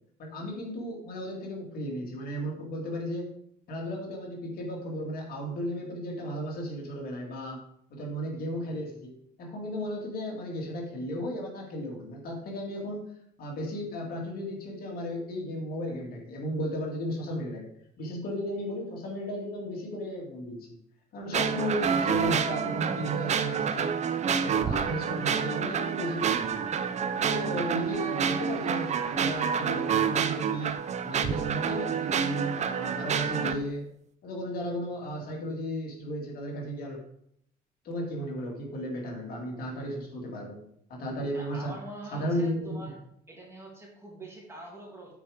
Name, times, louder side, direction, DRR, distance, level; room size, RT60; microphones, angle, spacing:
voice 1, 0.2-3.3 3.7-7.6 7.9-13.1 13.4-17.7 18.0-20.7 21.1-24.0 24.3-26.6 27.2-33.8 34.2-37.0 37.8-40.6 40.9-41.7 42.1-42.8, equal, 60° left, -1 dB, 2.4 m, -34 dB
sound 1, 21.3-33.6, right 7 dB, 40° right, 0.7 m, -28 dB
voice 2, 41.3-43.0 43.3-45.1, right 1 dB, 15° right, -2 dB, 2.9 m, -45 dB
8.4 x 4.9 x 5.0 m, 0.71 s
cardioid pair, 110°, 17 cm